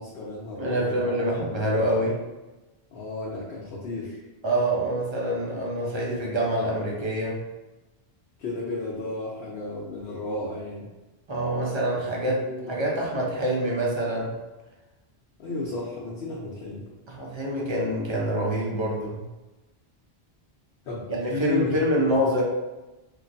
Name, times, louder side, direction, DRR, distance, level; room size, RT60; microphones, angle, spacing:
voice 1, 0.0-1.2 2.9-4.2 8.4-10.9 12.2-12.7 15.4-16.9 20.9-22.2, left 2 dB, 75° left, -5 dB, 0.8 m, -34 dB
voice 2, 0.6-2.2 4.4-7.4 11.3-14.3 17.1-19.2 21.1-22.4, right 1 dB, 35° right, -3 dB, 0.5 m, -26 dB
3.1 x 2.3 x 2.5 m, 1.1 s
omnidirectional pair, 1.1 m